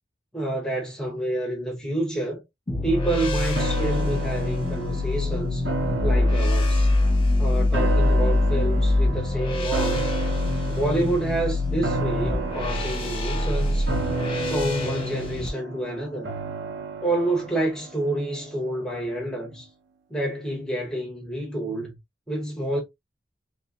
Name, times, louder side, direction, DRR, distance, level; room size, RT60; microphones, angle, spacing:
voice 1, 0.3-2.4 2.8-5.6 6.0-6.9 7.4-10.1 10.7-13.9 14.5-16.3 17.0-19.7 20.1-21.9 22.3-22.8, right 1 dB, 5° left, 1.4 m, -28 dB
sound 1, 2.7-15.5, left 2 dB, 30° left, 1.1 m, -24 dB
sound 2, 3.6-18.9 19.2-19.3, right 4 dB, 75° right, 0.8 m, -34 dB
3.5 x 3.3 x 2.7 m
head